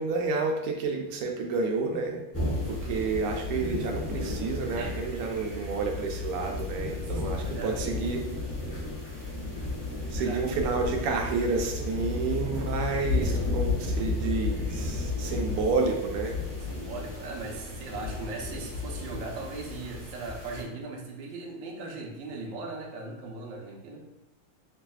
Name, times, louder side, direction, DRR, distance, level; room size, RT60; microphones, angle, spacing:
voice 1, 0.0-2.2 2.7-8.2 10.1-16.4, right 4 dB, 90° right, 1 dB, 1.6 m, -30 dB
sound 1, 2.3-20.6, left 3 dB, 10° left, 0.7 m, -33 dB
voice 2, 6.8-7.8 10.0-10.4 16.6-24.0, right 3 dB, 65° right, -1 dB, 1.3 m, -39 dB
6.2 x 2.5 x 2.3 m, 0.92 s
omnidirectional pair, 2.4 m